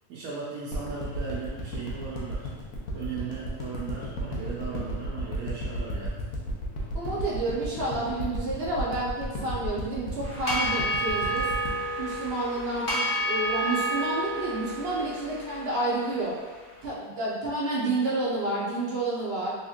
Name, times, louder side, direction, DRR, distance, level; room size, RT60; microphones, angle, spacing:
voice 1, 0.1-2.5 2.9-6.2, right 5 dB, 80° right, -7 dB, 1.0 m, -37 dB
sound 1, 0.7-13.0 13.5-13.6, equal, 75° left, 1.1 m, -33 dB
voice 2, 6.9-11.5 12.0-16.3 16.8-19.5, right 2 dB, 50° right, -6 dB, 0.9 m, -30 dB
sound 2, 10.2-16.6, right 1 dB, 40° left, 0.9 m, -30 dB
3.5 x 3.0 x 2.3 m, 1.3 s
omnidirectional pair, 1.6 m